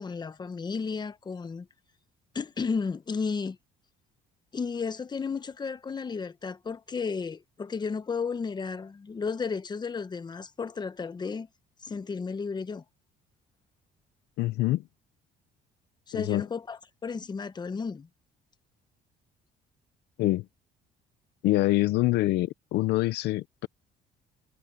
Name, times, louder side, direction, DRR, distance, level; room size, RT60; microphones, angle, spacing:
voice 1, 0.0-1.7 2.3-3.6 4.5-11.5 11.8-12.8 16.1-18.1, left 5 dB, 25° left, 1.1 m, -33 dB
voice 2, 14.4-14.8 16.1-16.4 20.2-20.4 21.4-23.7, left 17 dB, 80° left, 0.7 m, -25 dB
cardioid pair, 110°, 17 cm